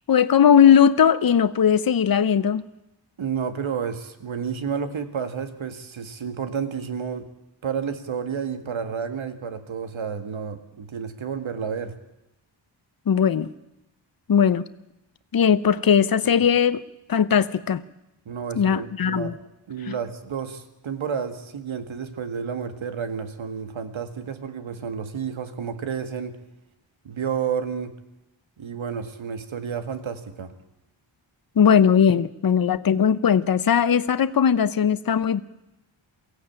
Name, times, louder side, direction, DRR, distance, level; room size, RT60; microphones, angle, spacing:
voice 1, 0.1-2.6 13.1-13.5 14.3-14.6 15.3-16.8 17.1-17.8 18.6-19.3 19.9-20.0 31.6-35.4, left 8 dB, 50° left, 14 dB, 0.8 m, -19 dB
voice 2, 3.2-7.3 7.6-11.9 16.2-16.3 18.3-19.4 19.7-26.4 27.0-27.9 28.6-30.5, right 6 dB, 80° right, 9 dB, 2.0 m, -31 dB
22.5 x 16.0 x 8.8 m, 0.90 s
wide cardioid pair, 150°, 47 cm